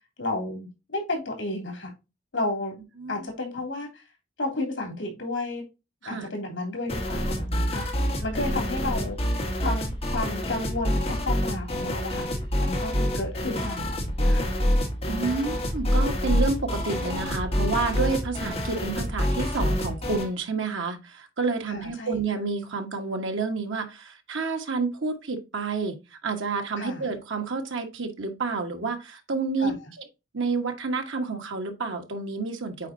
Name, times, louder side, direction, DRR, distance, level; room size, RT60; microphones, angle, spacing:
voice 1, 0.2-1.9 2.3-2.7 3.1-4.0 4.4-5.6 6.0-9.9 10.1-12.3 12.6-14.6 21.7-22.2 26.8-27.1 29.6-29.8, left 2 dB, 75° left, 3.2 m, -32 dB
voice 2, 3.0-3.3 6.0-6.3 15.1-29.8 30.3-32.9, right 4 dB, 80° right, 1.4 m, -29 dB
sound 1, 6.9-20.3, equal, 30° left, 1.6 m, -27 dB
8.2 x 4.5 x 2.7 m
head